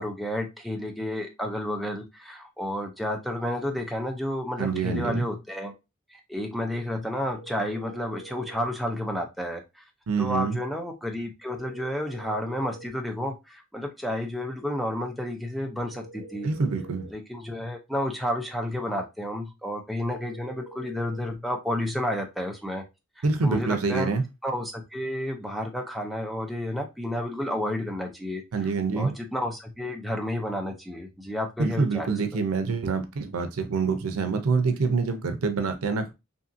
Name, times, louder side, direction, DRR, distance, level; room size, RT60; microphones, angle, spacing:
voice 1, 0.0-5.7 6.1-9.8 10.2-16.5 17.1-22.8 23.2-24.1 24.4-28.4 28.9-32.4, left 1 dB, ahead, 0.4 m, -31 dB
voice 2, 4.6-5.3 10.1-10.6 16.4-17.1 23.2-24.2 28.5-29.1 31.6-36.1, right 4 dB, 90° right, 0.5 m, -26 dB
sound 1, 7.3-8.7 11.5-12.9 15.8-17.2 20.0-21.4, right 2 dB, 45° right, 0.9 m, -46 dB
2.8 x 2.6 x 2.4 m
head